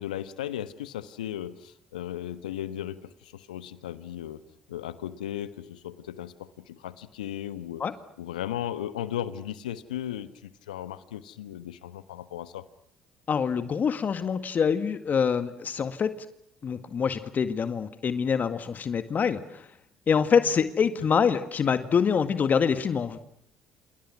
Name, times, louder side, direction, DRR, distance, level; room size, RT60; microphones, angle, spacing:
voice 1, 0.0-7.8 8.2-12.7 21.0-21.1, left 11 dB, 85° left, 13 dB, 1.3 m, -36 dB
voice 2, 13.3-16.1 16.6-19.7 20.1-23.2, left 6 dB, 45° left, 10 dB, 1.9 m, -25 dB
29.0 x 28.5 x 6.1 m, 0.71 s
hypercardioid pair, 55°, 4 cm